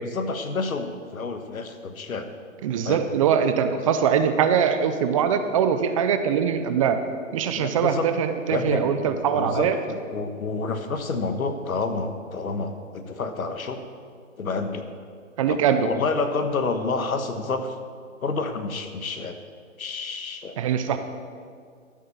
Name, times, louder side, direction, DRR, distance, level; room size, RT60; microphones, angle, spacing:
voice 1, 0.0-2.3 2.8-3.1 7.6-8.1 8.5-13.8 14.4-14.8 15.5-17.7 18.2-19.4 19.8-20.6, left 4 dB, 85° left, 8 dB, 1.5 m, -29 dB
voice 2, 2.6-7.0 7.3-9.8 15.4-15.9 20.6-21.0, right 7 dB, 25° right, 8 dB, 0.5 m, -22 dB
13.5 x 7.5 x 7.0 m, 2.1 s
hypercardioid pair, 140°, 40 cm